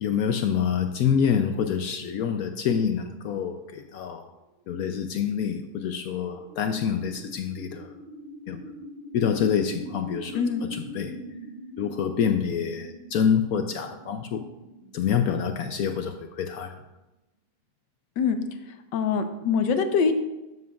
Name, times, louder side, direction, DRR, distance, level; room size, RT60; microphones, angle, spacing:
voice 1, 0.0-4.3 4.7-7.9 8.5-8.6 9.1-10.4 10.7-11.1 11.8-14.5 14.9-16.7, left 7 dB, 70° left, 7 dB, 0.9 m, -26 dB
sound 1, 4.7-16.8, equal, 80° right, 0.3 m, -43 dB
voice 2, 18.9-20.2, left 5 dB, 85° left, 7 dB, 1.5 m, -23 dB
12.0 x 8.2 x 2.4 m, 1.0 s
omnidirectional pair, 1.9 m